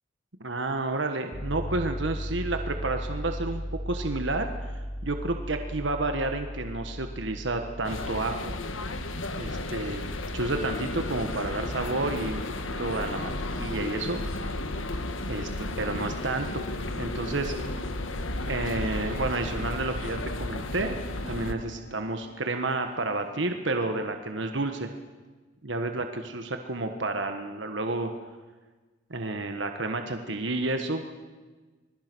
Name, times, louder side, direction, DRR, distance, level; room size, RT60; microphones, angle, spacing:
voice 1, 0.4-4.7 5.0-8.5 9.4-12.4 12.8-14.2 15.3-16.7 17.0-17.5 18.5-24.9 25.6-28.1 29.1-31.0, right 2 dB, 70° right, 6 dB, 1.5 m, -30 dB
sound 1, 1.3-11.4, equal, 10° left, 4.2 m, -37 dB
sound 2, 7.8-21.5, left 2 dB, 85° left, 1.6 m, -33 dB
sound 3, 13.2-23.6, right 3 dB, 55° left, 1.7 m, -52 dB
25.5 x 21.0 x 6.2 m, 1.3 s
head